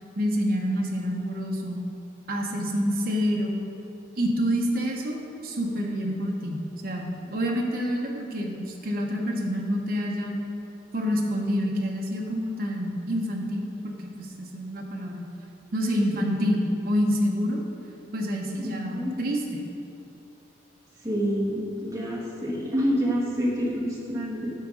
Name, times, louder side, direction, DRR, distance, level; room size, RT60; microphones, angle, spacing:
voice 1, 0.2-1.8 2.3-3.5 4.2-5.2 5.4-6.6 6.8-10.4 10.9-15.2 15.7-17.6 18.1-19.7, equal, 50° right, 0 dB, 0.9 m, -27 dB
voice 2, 18.6-19.1 21.0-24.5, equal, 15° right, -5 dB, 1.2 m, -27 dB
8.7 x 3.6 x 6.2 m, 2.6 s
head